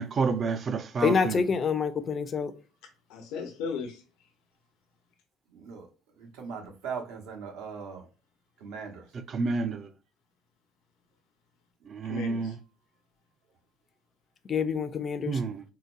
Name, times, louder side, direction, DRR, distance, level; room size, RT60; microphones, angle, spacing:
voice 1, 0.0-1.3 9.3-9.9 11.9-12.5 15.3-15.6, right 4 dB, 35° right, 0.4 m, -29 dB
voice 2, 1.0-2.5 14.5-15.4, left 5 dB, 35° left, 0.4 m, -27 dB
voice 3, 2.8-4.3 12.0-12.6, left 5 dB, 90° left, 0.9 m, -37 dB
voice 4, 5.5-5.9 6.2-8.0 8.6-9.0, right 6 dB, 85° right, 1.0 m, -39 dB
3.9 x 2.1 x 2.5 m
cardioid pair, 135°, 0 cm